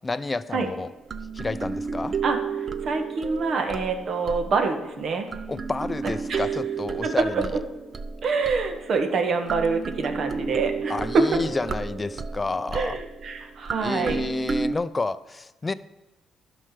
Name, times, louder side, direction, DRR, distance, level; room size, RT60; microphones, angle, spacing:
voice 1, 0.0-0.9 1.3-2.2 5.5-7.6 10.9-13.0 13.8-15.7, left 3 dB, 25° left, 14 dB, 0.5 m, -30 dB
sound 1, 0.5-4.8 5.3-9.0 9.5-14.7, right 5 dB, 45° right, 0.6 m, -32 dB
voice 2, 2.2-5.3 6.3-6.4 7.0-7.3 8.2-11.4 12.7-14.2, right 4 dB, 60° right, 5 dB, 1.5 m, -26 dB
11.0 x 5.7 x 6.7 m, 1.0 s
cardioid pair, 90°, 0 cm